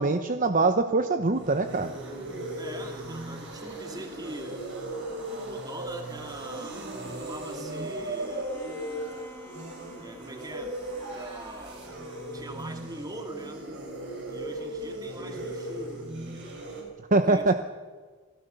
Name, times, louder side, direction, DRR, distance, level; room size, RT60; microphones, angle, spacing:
voice 1, 0.0-1.9 17.1-17.5, right 3 dB, 40° right, 8 dB, 0.9 m, -23 dB
sound 1, 1.2-16.8, right 1 dB, 60° right, 6.7 m, -37 dB
voice 2, 2.6-4.7 5.5-8.6 10.0-10.8 11.1-11.9 12.3-13.7 14.3-16.1 17.1-17.5, right 1 dB, 20° right, 5 dB, 2.4 m, -43 dB
Bowed string instrument, 8.2-13.3, left 1 dB, 10° left, 1.7 m, -50 dB
27.0 x 17.0 x 6.9 m, 1.4 s
head